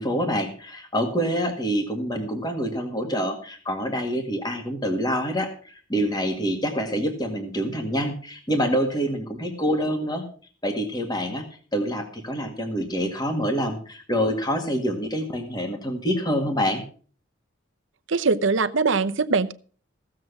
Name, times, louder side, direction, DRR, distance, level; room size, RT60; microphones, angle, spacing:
voice 1, 0.0-10.2 10.6-11.5 11.7-16.8, equal, 20° left, 4 dB, 1.9 m, -26 dB
voice 2, 18.1-19.5, right 4 dB, 65° right, 13 dB, 0.8 m, -22 dB
15.5 x 7.6 x 6.0 m, 0.41 s
head